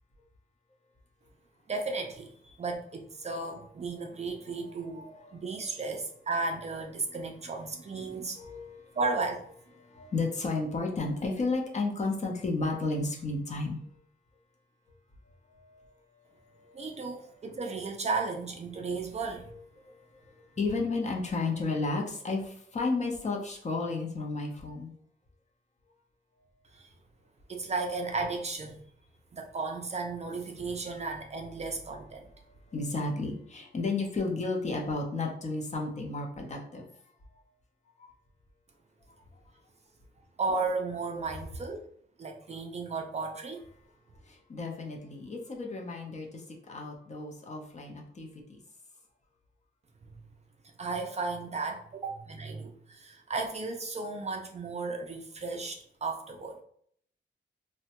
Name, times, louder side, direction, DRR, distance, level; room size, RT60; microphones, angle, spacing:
voice 1, 1.7-8.4 9.0-9.5 16.7-19.5 26.7-26.9 27.5-28.8 29.3-32.3 40.4-41.9 42.2-43.6 50.8-56.6, right 3 dB, 35° right, 3 dB, 0.4 m, -34 dB
voice 2, 8.3-8.8 9.8-13.8 15.6-15.8 16.6-16.7 19.4-24.9 30.9-31.0 32.7-36.9 38.0-38.1 44.3-48.3, left 3 dB, 40° left, 1 dB, 0.6 m, -33 dB
3.2 x 2.1 x 2.8 m, 0.63 s
wide cardioid pair, 170°, 19 cm